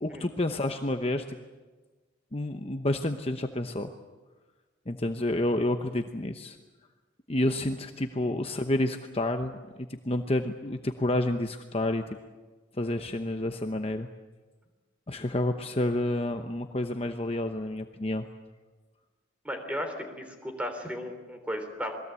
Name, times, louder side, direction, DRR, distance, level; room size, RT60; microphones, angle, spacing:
voice 1, 0.0-1.4 2.3-3.9 4.9-6.6 7.3-9.6 10.0-12.0 12.8-14.1 15.1-18.3, left 1 dB, 30° left, 6 dB, 0.9 m, -29 dB
voice 2, 19.4-21.9, equal, 5° right, 5 dB, 3.5 m, -35 dB
27.5 x 21.5 x 8.4 m, 1.3 s
head